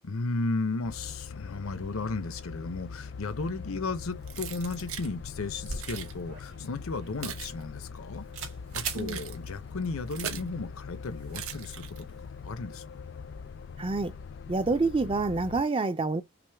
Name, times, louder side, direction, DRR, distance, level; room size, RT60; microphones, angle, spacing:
voice 1, 0.0-8.2 8.7-11.8 12.4-12.8, left 3 dB, 80° left, 0.7 m, -34 dB
sound 1, 0.8-15.6, left 5 dB, 55° left, 0.3 m, -42 dB
Keys jangling, 4.3-5.1 5.7-6.1 6.9-10.6 11.3-12.2, right 9 dB, 85° right, 0.9 m, -40 dB
sound 2, 5.7-8.0 8.3-8.6 8.8-9.1, right 5 dB, 65° right, 2.0 m, -40 dB
voice 2, 13.8-14.1 14.5-16.2, right 3 dB, 25° right, 0.4 m, -27 dB
5.9 x 2.1 x 3.4 m
head